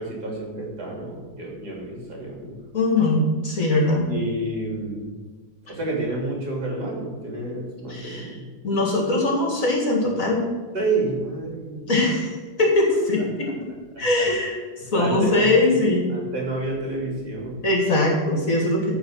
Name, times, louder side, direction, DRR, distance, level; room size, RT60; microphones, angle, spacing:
voice 1, 0.0-2.5 4.1-5.2 5.7-8.4 10.7-11.9 13.4-13.5 13.9-14.3 14.9-15.8 16.1-17.6, right 2 dB, 55° right, -2 dB, 3.3 m, -29 dB
voice 2, 2.7-4.1 7.9-8.3 8.6-10.5 11.9-12.3 12.6-13.5 14.0-14.6 14.9-16.0 17.6-19.0, left 2 dB, 45° left, -1 dB, 2.3 m, -21 dB
14.0 x 4.8 x 6.5 m, 1.4 s
omnidirectional pair, 2.1 m